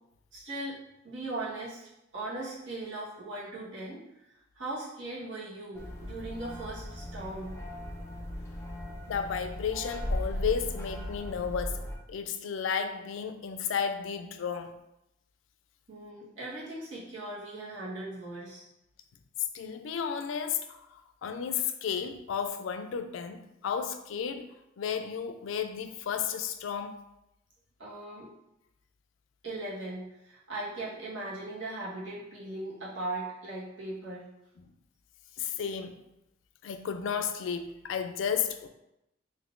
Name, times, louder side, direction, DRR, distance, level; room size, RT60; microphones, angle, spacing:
voice 1, 0.3-1.8 2.1-4.2 4.5-7.6 15.9-18.6 27.8-28.3 29.4-34.3, right 2 dB, 85° right, 1.2 m, -39 dB
sound 1, 5.7-12.0, left 1 dB, 15° left, 0.4 m, -37 dB
voice 2, 9.1-11.8 12.1-14.7 19.5-24.5 24.8-27.0 35.4-36.0 36.6-38.7, left 7 dB, 90° left, 0.3 m, -33 dB
3.6 x 2.6 x 2.5 m
head